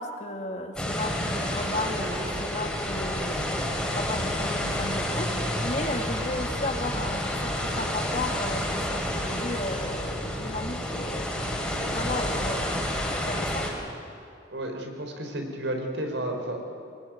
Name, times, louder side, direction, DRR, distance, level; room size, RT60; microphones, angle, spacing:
voice 1, 0.0-11.5 11.8-13.7, left 2 dB, 40° left, 3 dB, 2.2 m, -34 dB
sound 1, 0.8-13.7, equal, 5° left, 3.9 m, -29 dB
voice 2, 14.5-16.6, right 1 dB, 80° right, 3 dB, 4.5 m, -32 dB
25.0 x 20.5 x 9.4 m, 2.5 s
head